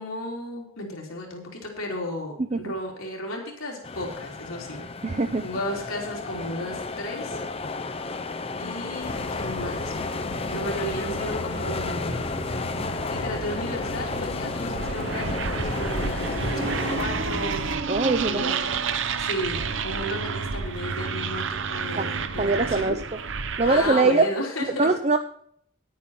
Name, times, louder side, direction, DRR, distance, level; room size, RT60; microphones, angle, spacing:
voice 1, 0.0-4.8 5.4-7.4 8.6-9.9 10.5-12.3 13.1-17.9 18.3-18.8 19.2-23.0 23.7-24.9, left 1 dB, 90° left, 0 dB, 3.4 m, -34 dB
sound 1, 3.8-17.1, left 3 dB, 30° left, 0.6 m, -33 dB
voice 2, 5.0-5.4 17.9-18.5 22.0-22.1 22.4-23.2 23.6-24.3 24.7-25.2, right 3 dB, 30° right, 7 dB, 0.5 m, -22 dB
sound 2, 9.0-17.8, left 1 dB, 70° left, 1.5 m, -35 dB
sound 3, 14.7-24.1, right 5 dB, 65° right, 0.8 m, -29 dB
10.0 x 9.4 x 5.6 m, 0.65 s
head